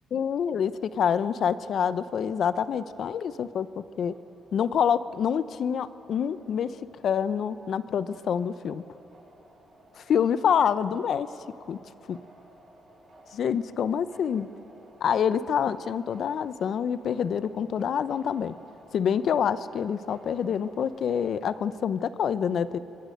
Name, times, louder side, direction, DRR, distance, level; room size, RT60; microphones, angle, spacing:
voice 1, 0.1-4.1 4.5-6.8 7.0-8.8 10.0-11.3 11.7-11.8 12.1-12.2 13.3-14.5 15.0-18.5 18.9-22.8, left 8 dB, 60° left, 14 dB, 0.8 m, -26 dB
sound 1, 2.3-21.4, right 1 dB, 45° right, 7.8 m, -56 dB
26.0 x 22.5 x 6.6 m, 2.9 s
cardioid pair, 90°, 0 cm